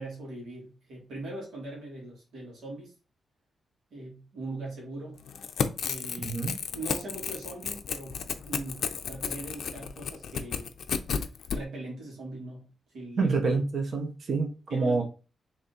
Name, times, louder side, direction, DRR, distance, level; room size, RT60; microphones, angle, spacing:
voice 1, 0.0-2.9 3.9-5.2 5.8-6.4 6.7-10.7 11.5-13.4 14.7-15.0, right 2 dB, 85° right, -3 dB, 1.9 m, -40 dB
Crackle / Tearing, 5.2-11.6, left 6 dB, 65° left, 0.5 m, -32 dB
voice 2, 6.2-6.5 13.2-15.0, right 4 dB, 50° right, 3 dB, 0.9 m, -27 dB
3.6 x 3.2 x 4.1 m, 0.33 s
wide cardioid pair, 170°, 0 cm